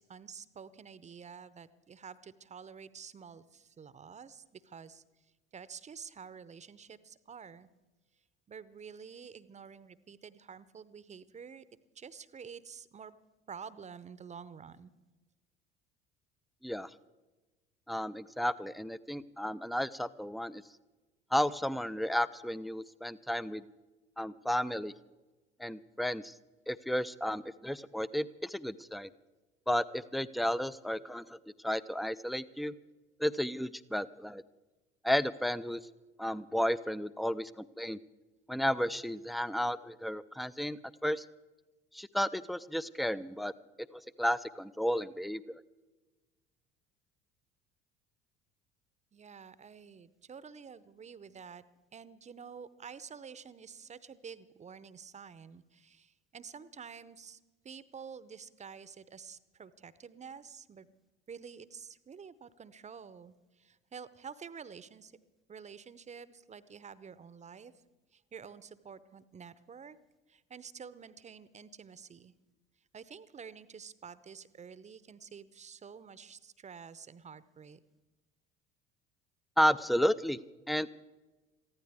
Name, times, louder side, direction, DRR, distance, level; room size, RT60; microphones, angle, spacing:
voice 1, 0.0-5.0 5.5-7.7 8.5-11.6 11.9-13.1 13.5-14.9 49.1-51.6 51.9-57.4 57.6-60.9 61.3-65.1 65.5-67.7 68.1-70.0 70.3-72.3 72.9-77.8, right 6 dB, 25° right, 17 dB, 0.7 m, -49 dB
voice 2, 17.9-20.6 21.3-23.6 24.2-24.9 25.6-26.3 26.7-29.1 29.7-31.4 31.6-32.7 33.2-34.4 35.0-35.8 36.2-38.0 38.5-41.3 41.9-43.5 43.9-45.6 79.6-80.4 80.7-80.9, equal, ahead, 16 dB, 0.4 m, -32 dB
23.0 x 15.0 x 3.5 m, 1.2 s
figure-of-eight pair, 60°, 30 cm